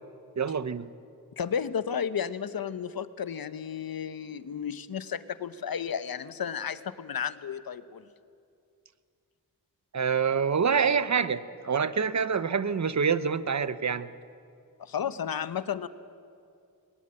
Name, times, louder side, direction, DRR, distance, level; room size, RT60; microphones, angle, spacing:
voice 1, 0.4-0.9 9.9-14.1, right 6 dB, 50° right, 13 dB, 0.8 m, -26 dB
voice 2, 1.4-8.0 14.8-15.9, left 8 dB, 75° left, 13 dB, 0.9 m, -33 dB
21.0 x 19.0 x 8.9 m, 2.4 s
wide cardioid pair, 85°, 36 cm